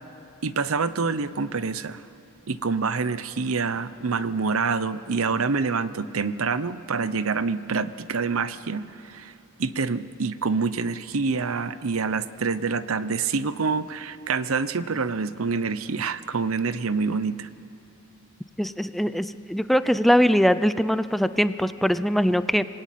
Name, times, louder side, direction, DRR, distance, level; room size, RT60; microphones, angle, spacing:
voice 1, 0.4-2.0 2.5-9.3 9.6-17.5, right 4 dB, 80° right, 14 dB, 0.8 m, -26 dB
voice 2, 18.6-22.7, equal, ahead, 13 dB, 0.5 m, -22 dB
25.5 x 19.5 x 9.3 m, 2.8 s
head